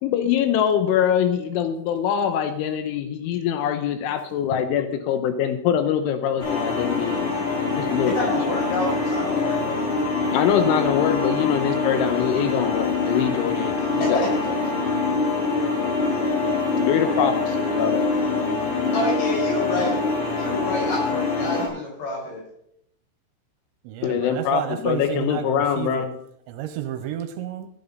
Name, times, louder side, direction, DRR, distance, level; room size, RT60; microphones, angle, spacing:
voice 1, 0.0-7.5 7.7-8.4 10.3-14.2 16.9-18.0 24.0-26.1, left 9 dB, 80° left, 8 dB, 3.3 m, -23 dB
sound 1, 6.4-21.7, left 3 dB, 35° left, 6.2 m, -24 dB
voice 2, 8.0-9.8 14.0-14.3 14.7-14.8 18.9-20.0 20.4-22.4, left 2 dB, 55° left, -2 dB, 7.3 m, -28 dB
voice 3, 23.8-26.1 26.5-27.7, right 11 dB, 80° right, 9 dB, 2.9 m, -31 dB
16.5 x 11.0 x 4.0 m, 0.74 s
omnidirectional pair, 5.6 m